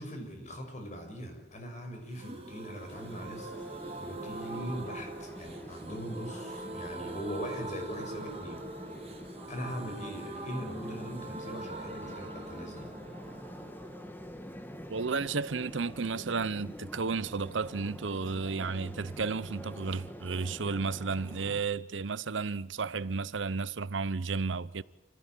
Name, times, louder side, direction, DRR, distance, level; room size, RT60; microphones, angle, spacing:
voice 1, 0.0-3.5 4.0-8.6 9.5-12.9, equal, 40° left, 6.2 m, -41 dB
sound 1, 2.1-15.8 16.0-16.1 16.3-16.4, right 2 dB, 35° right, 3.4 m, -43 dB
sound 2, 2.9-21.6, equal, 10° left, 1.6 m, -46 dB
voice 2, 14.9-24.8, right 4 dB, 90° right, 0.8 m, -33 dB
28.5 x 16.5 x 9.2 m
head